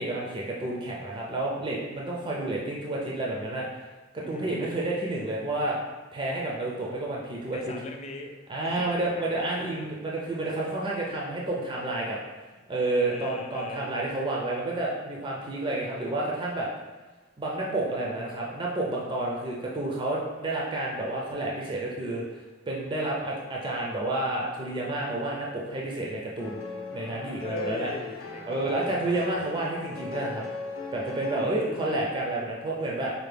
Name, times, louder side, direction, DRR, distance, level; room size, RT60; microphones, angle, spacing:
voice 1, 0.0-3.9 4.1-5.8 6.1-7.7 8.5-12.2 12.7-16.7 17.4-26.6 26.9-27.9 28.4-30.5 30.9-33.1, right 2 dB, 25° right, -3 dB, 0.4 m, -30 dB
voice 2, 4.2-4.6 7.5-8.4 8.6-9.8 12.5-12.7 13.0-14.0 27.4-29.2 31.3-32.0, left 2 dB, 35° left, 4 dB, 0.3 m, -40 dB
sound 1, 26.4-31.4, left 4 dB, 75° left, 0.6 m, -39 dB
4.4 x 2.1 x 3.3 m, 1.2 s
head